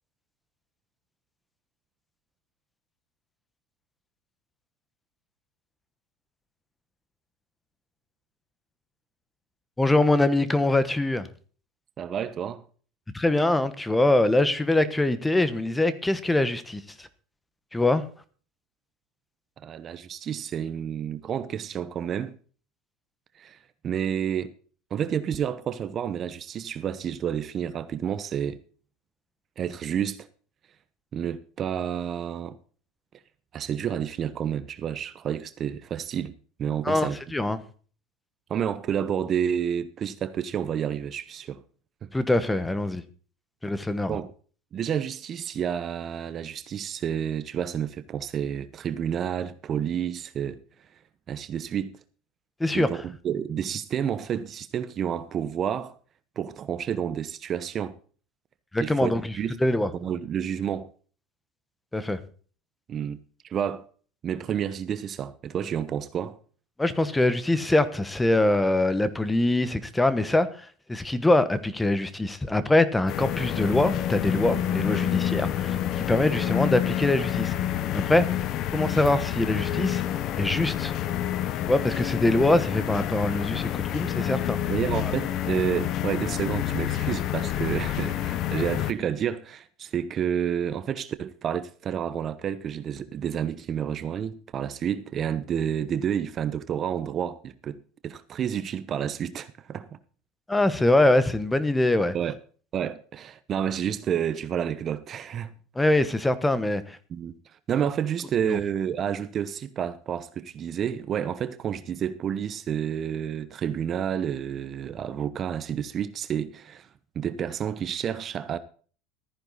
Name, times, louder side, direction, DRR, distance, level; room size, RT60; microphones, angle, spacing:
voice 1, 9.8-11.3 13.1-17.1 17.7-18.0 36.8-37.6 42.1-43.0 43.6-44.2 52.6-52.9 58.7-59.3 59.6-59.9 61.9-62.2 66.8-70.5 70.9-77.5 77.9-78.2 78.7-80.0 80.4-80.9 81.7-84.6 85.0-85.1 100.5-102.1 105.7-107.0 108.4-108.6, left 2 dB, 10° left, 1.1 m, -23 dB
voice 2, 12.0-12.6 19.6-22.3 23.4-23.6 23.8-24.5 24.9-28.6 29.6-30.3 31.1-32.6 33.5-37.2 38.5-41.6 42.0-42.1 44.1-44.3 44.7-50.6 51.3-52.0 52.7-55.9 56.4-58.0 58.8-59.6 59.9-60.9 62.9-63.2 63.4-63.9 64.2-66.4 84.7-100.0 102.1-102.4 102.7-105.5 107.1-107.3 107.7-116.9 117.1-118.6, right 8 dB, 35° right, 0.9 m, -30 dB
sound 1, 73.1-88.9, left 11 dB, 45° left, 1.1 m, -28 dB
14.0 x 10.0 x 4.2 m
supercardioid pair, 130°, 0 cm